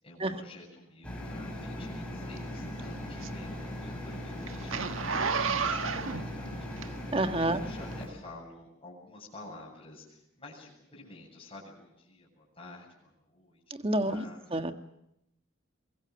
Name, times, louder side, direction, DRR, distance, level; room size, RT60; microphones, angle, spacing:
voice 1, 0.0-4.9 5.1-6.5 6.8-7.2 7.5-13.6 14.0-14.6, left 2 dB, 25° left, -6 dB, 7.3 m, -50 dB
sound 1, 1.0-8.1, left 1 dB, 5° left, 5.8 m, -39 dB
Zipper (clothing), 2.4-7.3 7.9-8.0, right 5 dB, 85° right, 1.5 m, -33 dB
voice 2, 7.1-7.6 13.7-14.2 14.5-14.7, right 1 dB, 30° right, 8 dB, 1.4 m, -28 dB
24.0 x 22.0 x 7.8 m, 0.81 s
head